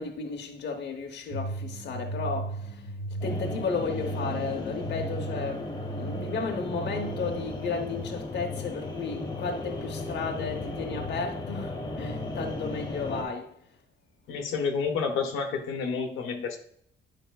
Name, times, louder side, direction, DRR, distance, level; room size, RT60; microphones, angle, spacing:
voice 1, 0.0-2.9 3.2-13.6, left 4 dB, 60° left, 0.9 m, -34 dB
sound 1, 1.3-7.5, right 2 dB, 40° right, 2.0 m, -36 dB
sound 2, 3.2-13.2, left 2 dB, 20° left, 1.2 m, -36 dB
voice 2, 14.3-16.6, left 5 dB, 85° left, 1.0 m, -29 dB
9.1 x 5.3 x 2.3 m
cardioid pair, 90°, 20 cm